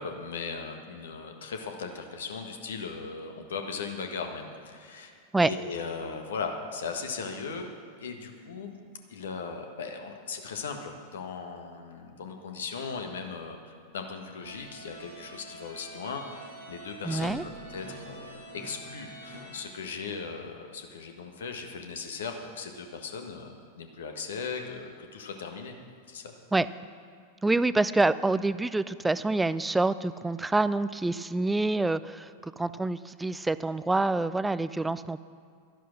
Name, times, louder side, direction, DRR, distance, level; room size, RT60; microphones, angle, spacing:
voice 1, 0.0-5.1 5.4-7.7 8.0-8.8 9.1-25.7 26.1-26.3, left 5 dB, 65° left, 5 dB, 1.4 m, -38 dB
sound 1, 14.4-19.6, right 1 dB, 85° left, 4.3 m, -46 dB
voice 2, 17.1-17.4 26.5-26.7 27.4-35.2, right 2 dB, 10° right, 15 dB, 0.4 m, -26 dB
12.0 x 11.0 x 6.3 m, 2.2 s
figure-of-eight pair, 90°, 0 cm